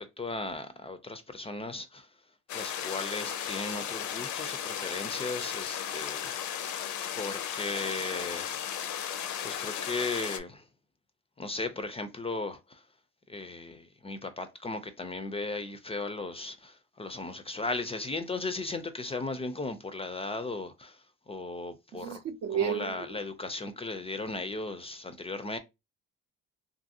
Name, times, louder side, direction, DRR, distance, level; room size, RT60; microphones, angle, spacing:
voice 1, 0.0-2.1 2.5-6.4 7.2-8.6 9.4-10.7 11.4-12.8 13.3-22.2 22.5-25.6, left 3 dB, 20° left, 0.3 m, -36 dB
sound 1, 2.5-10.4, left 9 dB, 75° left, 0.5 m, -35 dB
voice 2, 21.9-23.2, right 9 dB, 55° right, 0.5 m, -32 dB
2.6 x 2.5 x 2.6 m
cardioid pair, 90°, 30 cm